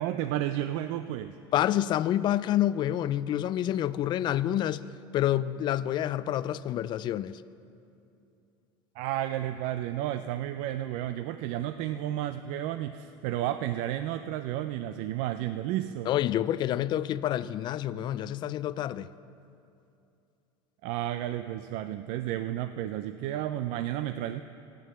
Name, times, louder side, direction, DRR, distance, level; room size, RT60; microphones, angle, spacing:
voice 1, 0.0-1.4 9.0-16.1 20.8-24.4, right 12 dB, 65° right, 0.4 m, -32 dB
voice 2, 1.5-4.8 5.1-7.4 16.1-19.1, left 12 dB, 40° left, 0.3 m, -28 dB
13.0 x 9.2 x 6.8 m
supercardioid pair, 125°, 12 cm